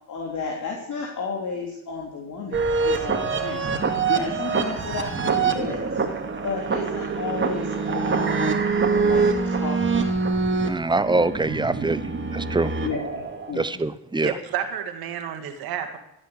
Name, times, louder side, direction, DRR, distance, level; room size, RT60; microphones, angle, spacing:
voice 1, 0.1-3.7 4.1-6.0 6.4-9.2 9.5-10.2 12.8-13.2 13.5-13.7, left 4 dB, 50° left, -1 dB, 3.5 m, -32 dB
sound 1, 2.5-13.5, right 4 dB, 30° right, 2.5 m, -25 dB
voice 2, 10.7-12.0 12.3-12.7 13.5-14.3, right 2 dB, 10° right, 14 dB, 1.0 m, -24 dB
voice 3, 14.2-16.0, right 9 dB, 70° right, 7 dB, 2.3 m, -30 dB
14.5 x 9.1 x 8.4 m, 0.81 s
supercardioid pair, 75°, 37 cm